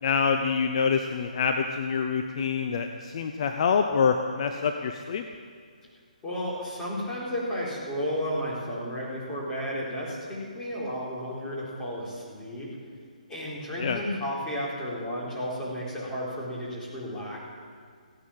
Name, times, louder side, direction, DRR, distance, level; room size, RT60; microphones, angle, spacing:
voice 1, 0.0-5.2 13.8-14.0, left 6 dB, 45° left, 6 dB, 0.8 m, -26 dB
voice 2, 6.2-12.7 13.3-17.4, equal, 10° left, -7 dB, 4.2 m, -33 dB
16.5 x 10.5 x 7.4 m, 2.1 s
hypercardioid pair, 155°, 4 cm